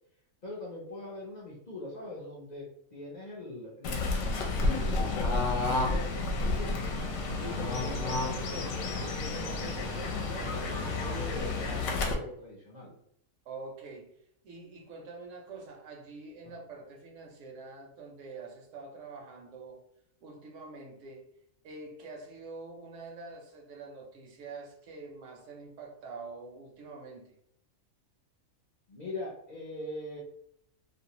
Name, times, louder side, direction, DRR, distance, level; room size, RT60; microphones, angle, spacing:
voice 1, 0.4-6.8 7.4-12.9 28.9-30.2, left 2 dB, 50° left, -6 dB, 0.5 m, -42 dB
Fowl / Bird, 3.8-12.1, left 3 dB, 70° left, 0.9 m, -31 dB
sound 1, 6.7-12.1, right 2 dB, 55° right, 0.6 m, -45 dB
voice 2, 13.5-14.1 14.4-19.8 20.2-21.2 21.6-27.3, right 3 dB, 70° right, 1 dB, 0.9 m, -45 dB
2.6 x 2.0 x 2.7 m, 0.71 s
omnidirectional pair, 1.4 m